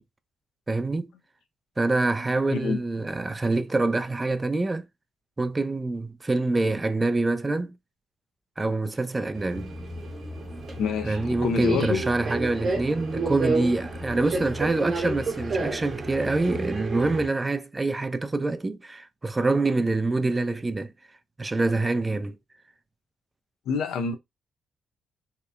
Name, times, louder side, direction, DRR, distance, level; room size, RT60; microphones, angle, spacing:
voice 1, 0.7-1.1 1.8-4.8 5.4-7.7 8.6-9.7 11.0-20.9 21.4-22.4, right 2 dB, 25° right, 0.3 m, -26 dB
Subway metro underground, 9.3-17.3, right 3 dB, 50° right, 0.8 m, -31 dB
voice 2, 10.8-12.0 23.7-24.1, left 5 dB, 90° left, 0.5 m, -27 dB
2.8 x 2.0 x 2.3 m
cardioid pair, 75°, 0 cm